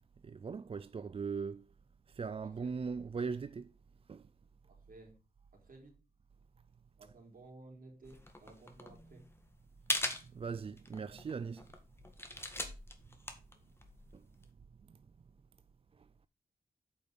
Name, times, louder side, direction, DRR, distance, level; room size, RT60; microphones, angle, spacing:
voice 1, 0.2-1.7 2.1-3.7 4.1-4.3 10.0-11.7 14.1-14.3 14.8-15.0 16.0-16.1, right 5 dB, 40° right, 0.4 m, -40 dB
voice 2, 4.7-5.2 5.5-6.0 7.0-9.3, right 2 dB, 65° right, 3.8 m, -56 dB
sound 1, 8.0-14.5, left 1 dB, 15° left, 1.6 m, -41 dB
8.4 x 5.3 x 6.1 m
wide cardioid pair, 100°, 15 cm